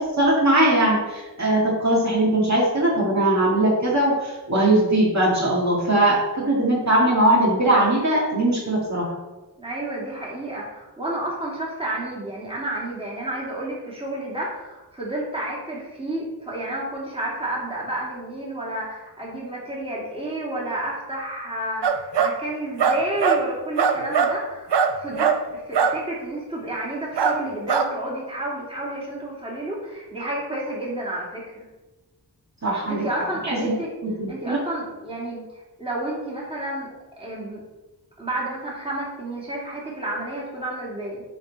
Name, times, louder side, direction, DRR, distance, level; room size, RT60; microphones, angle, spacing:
voice 1, 0.0-9.1 32.6-33.0 33.4-33.7 34.0-34.6, right 1 dB, 40° right, -5 dB, 2.3 m, -20 dB
voice 2, 9.6-31.6 32.9-33.9 34.3-37.6 38.2-41.2, right 1 dB, 15° right, -5 dB, 2.7 m, -31 dB
sound 1, 21.8-22.3 22.8-23.4 23.8-24.3 24.7-25.4 25.7-25.9 27.2-27.4 27.7-27.8, right 6 dB, 80° right, 0.7 m, -20 dB
10.0 x 3.8 x 4.2 m, 1.1 s
wide cardioid pair, 65°, 41 cm